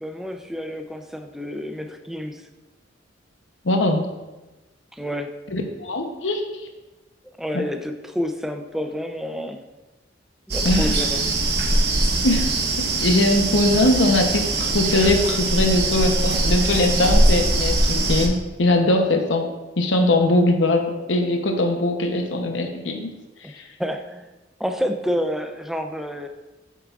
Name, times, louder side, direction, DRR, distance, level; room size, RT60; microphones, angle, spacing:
voice 1, 0.0-2.5 4.9-5.4 7.4-9.7 10.5-11.2 23.4-23.5 23.8-24.3 24.6-26.3, equal, ahead, 6 dB, 0.5 m, -29 dB
voice 2, 3.6-4.1 5.5-6.4 7.5-7.6 10.6-10.9 12.2-12.5 13.0-19.5 19.8-23.1 23.5-23.6, left 2 dB, 85° left, 4 dB, 0.8 m, -21 dB
sound 1, 10.5-18.3, right 2 dB, 60° right, 1.0 m, -21 dB
8.1 x 7.1 x 2.4 m, 1.1 s
head